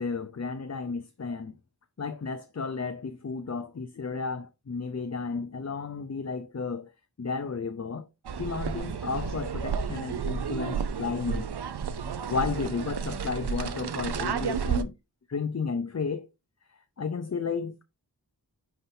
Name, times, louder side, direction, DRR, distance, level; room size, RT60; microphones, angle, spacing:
voice 1, 0.0-1.5 2.0-6.9 7.2-8.1 8.4-11.5 12.3-14.9 15.3-16.3 17.0-17.8, left 4 dB, 40° left, 0.6 m, -33 dB
sound 1, 8.2-14.8, right 6 dB, 75° right, 0.6 m, -31 dB
9.5 x 3.7 x 2.7 m
wide cardioid pair, 40°, 40 cm